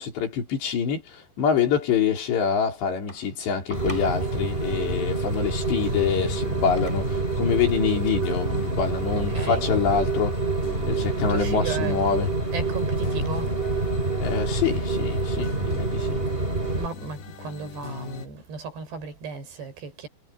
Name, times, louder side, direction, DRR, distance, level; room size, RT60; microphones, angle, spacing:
voice 1, 0.0-10.3 10.8-12.3 14.2-16.2, left 7 dB, 90° left, 6.3 m, -26 dB
sound 1, 3.1-4.5 6.0-7.2 8.1-8.2, left 1 dB, 5° left, 7.7 m, -44 dB
sound 2, 3.7-18.3, left 4 dB, 75° left, 5.2 m, -40 dB
Rain, 3.7-16.9, right 2 dB, 15° right, 3.5 m, -27 dB
voice 2, 9.1-9.7 11.3-13.5 16.7-20.1, right 5 dB, 75° right, 7.7 m, -35 dB
omnidirectional pair, 4.9 m